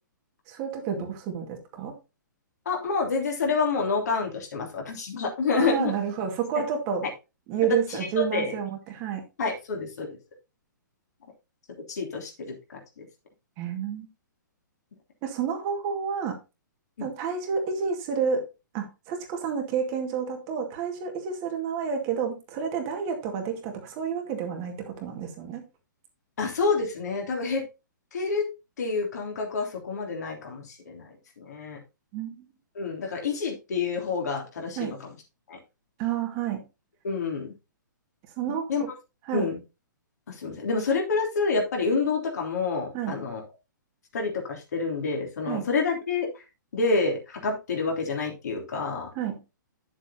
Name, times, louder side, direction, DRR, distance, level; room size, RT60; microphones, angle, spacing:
voice 1, 0.5-2.0 5.6-7.0 7.5-9.2 13.6-14.1 15.2-16.4 17.0-18.4 18.7-25.6 32.1-32.4 34.8-34.9 36.0-36.6 38.4-38.9 39.2-39.5 42.9-43.2 45.4-45.7 49.1-49.4, right 7 dB, 30° right, 3 dB, 2.1 m, -30 dB
voice 2, 2.6-5.9 8.2-8.5 9.4-10.2 11.9-13.0 17.0-17.1 26.4-27.6 28.1-28.5 28.8-31.1 31.4-31.8 32.7-35.0 35.5-35.6 37.0-37.5 38.7-38.8 39.3-39.6 40.3-43.4 44.1-46.3 46.7-49.1, left 4 dB, 55° left, 1 dB, 3.2 m, -28 dB
10.5 x 7.4 x 2.9 m, 0.27 s
figure-of-eight pair, 120°, 11 cm